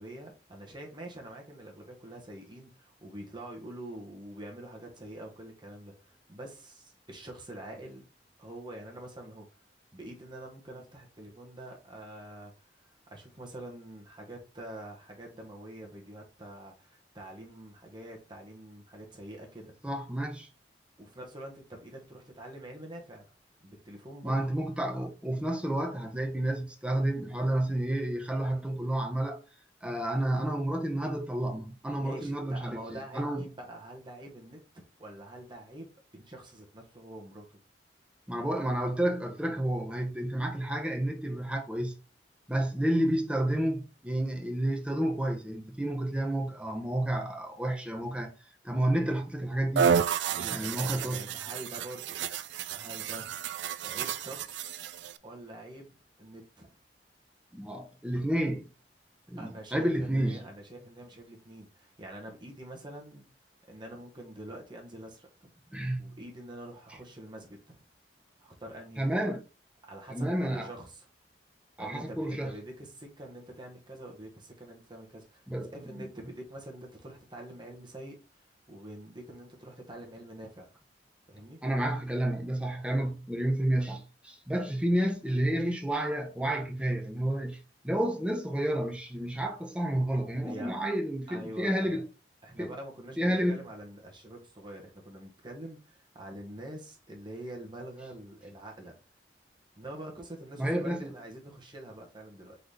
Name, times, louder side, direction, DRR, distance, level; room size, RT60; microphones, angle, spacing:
voice 1, 0.0-8.0 8.4-9.5 9.9-19.7 21.0-23.3 23.6-24.4 32.0-34.6 35.0-37.6 50.3-52.2 52.7-53.3 53.8-54.8 55.2-56.8 59.4-63.2 63.7-65.3 66.0-67.8 68.4-69.1 69.8-71.1 71.8-80.7 81.3-81.6 90.4-90.8 91.3-92.0 92.4-99.0 99.8-102.6, right 1 dB, 25° right, 1.2 m, -45 dB
voice 2, 19.8-20.5 24.2-29.4 29.8-33.4 38.3-41.9 42.5-48.3 48.6-49.9 50.5-51.3 57.5-58.7 59.3-60.5 65.7-66.2 69.0-69.4 70.1-70.7 71.8-72.5 75.5-76.0 81.6-87.6 87.8-92.1 92.6-92.7 93.2-93.6 100.6-101.1, right 1 dB, 5° right, 0.8 m, -30 dB
sound 1, 49.8-55.2, right 7 dB, 85° right, 0.4 m, -31 dB
4.0 x 3.9 x 3.3 m
head